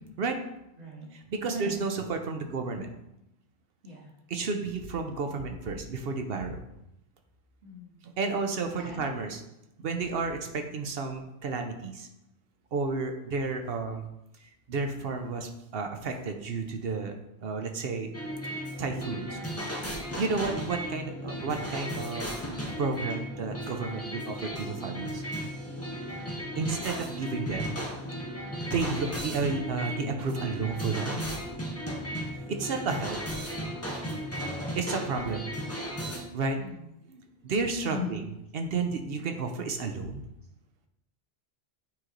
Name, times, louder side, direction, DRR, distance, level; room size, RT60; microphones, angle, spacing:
voice 1, 1.1-2.9 4.3-6.6 8.0-9.4 9.8-12.1 12.7-14.1 14.7-18.1 18.8-19.4 20.1-22.3 22.8-25.2 26.6-27.8 28.7-31.2 32.5-33.2 33.9-34.0 34.7-35.5 36.3-36.6 37.1-38.3 38.5-40.2, right 4 dB, 65° right, 5 dB, 0.9 m, -32 dB
voice 2, 7.6-7.9 8.7-9.1 36.6-36.9 37.9-38.2, left 2 dB, 80° right, -5 dB, 2.1 m, -39 dB
sound 1, 18.1-36.2, equal, 15° left, 0.7 m, -35 dB
8.9 x 3.1 x 3.8 m, 0.86 s
omnidirectional pair, 1.1 m